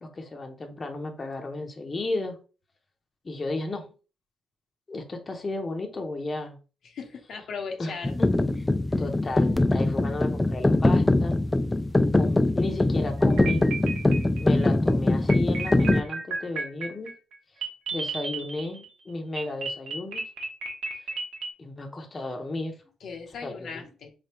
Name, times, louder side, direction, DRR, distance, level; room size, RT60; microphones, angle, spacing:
voice 1, 0.0-2.4 3.2-3.8 4.9-6.6 7.8-8.3 8.6-8.7 9.0-11.4 12.1-13.6 14.4-17.1 17.9-20.2 21.6-22.7 23.4-23.8, left 2 dB, 30° left, 0.8 m, -34 dB
voice 2, 6.8-8.1 8.9-9.0 23.0-24.1, left 5 dB, 65° left, 0.8 m, -38 dB
sound 1, 8.0-16.0, left 2 dB, 15° left, 0.3 m, -22 dB
sound 2, 13.2-14.7 15.3-18.9 19.4-21.5, right 3 dB, 80° right, 1.1 m, -33 dB
3.8 x 3.4 x 3.0 m
cardioid pair, 90°, 0 cm